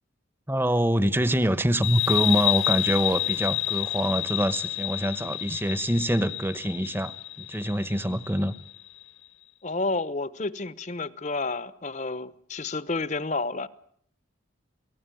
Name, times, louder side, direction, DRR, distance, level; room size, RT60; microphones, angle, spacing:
voice 1, 0.5-7.1 7.4-8.5, equal, 10° right, 1.0 m, -25 dB
sound 1, 1.8-9.0, left 17 dB, 80° left, 2.1 m, -29 dB
voice 2, 9.6-13.7, left 3 dB, 35° left, 1.0 m, -30 dB
28.0 x 18.0 x 9.2 m
head